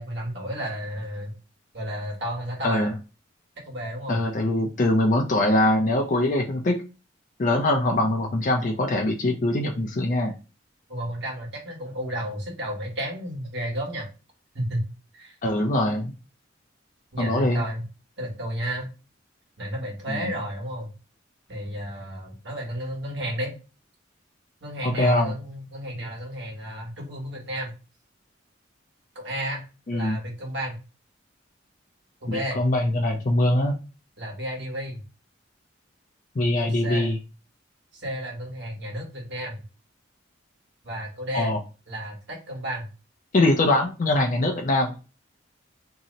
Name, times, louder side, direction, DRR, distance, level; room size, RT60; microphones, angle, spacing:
voice 1, 0.0-1.3 1.7-2.9 3.6-4.2 10.9-14.1 14.5-14.8 15.1-15.3 17.1-17.8 18.2-18.9 19.6-20.9 21.5-23.5 24.6-27.7 29.1-29.6 29.9-30.8 32.2-32.6 34.2-35.0 36.6-37.1 37.9-39.6 40.8-41.6 41.9-42.9, equal, 60° right, -1 dB, 1.2 m, -32 dB
voice 2, 4.1-6.8 7.4-10.3 15.4-16.1 17.2-17.6 20.1-20.3 24.8-25.4 29.9-30.2 32.3-33.8 36.4-37.2 41.3-41.6 43.3-44.9, left 1 dB, 40° left, 1 dB, 0.4 m, -23 dB
2.7 x 2.0 x 3.8 m, 0.32 s
head